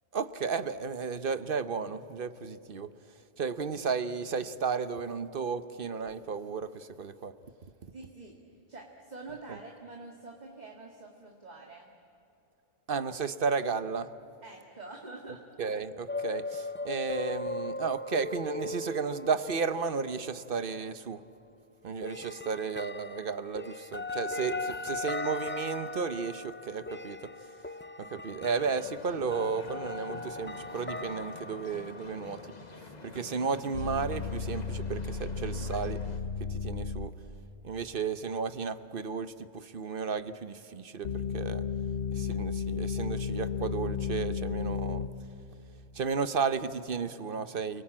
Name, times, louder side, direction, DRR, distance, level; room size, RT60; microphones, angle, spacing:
voice 1, 0.1-2.9 3.4-7.3 7.8-7.9 9.5-9.6 12.9-14.1 15.6-21.2 21.8-27.5 28.0-32.4 33.0-36.0 36.4-37.1 37.6-41.6 42.1-45.1 45.9-47.8, right 5 dB, 55° right, 13 dB, 1.0 m, -33 dB
voice 2, 7.9-8.4 8.7-11.9 14.4-15.4 24.7-25.1, right 3 dB, 40° right, 0 dB, 2.1 m, -47 dB
sound 1, 16.1-20.3 22.0-32.6, left 2 dB, 20° left, 0.3 m, -38 dB
sound 2, 28.6-36.2, left 3 dB, 40° left, 1.5 m, -47 dB
sound 3, 33.7-37.1 41.0-45.1, left 5 dB, 70° left, 1.3 m, -33 dB
29.0 x 19.0 x 8.8 m, 2.8 s
omnidirectional pair, 1.1 m